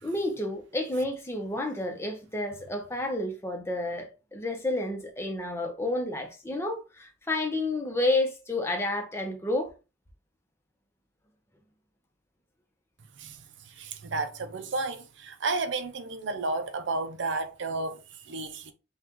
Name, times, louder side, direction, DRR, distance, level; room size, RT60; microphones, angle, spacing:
voice 1, 0.0-9.7, left 2 dB, 15° left, 0.8 m, -30 dB
voice 2, 13.2-18.7, right 3 dB, 75° right, 0.6 m, -32 dB
5.6 x 2.4 x 3.0 m
head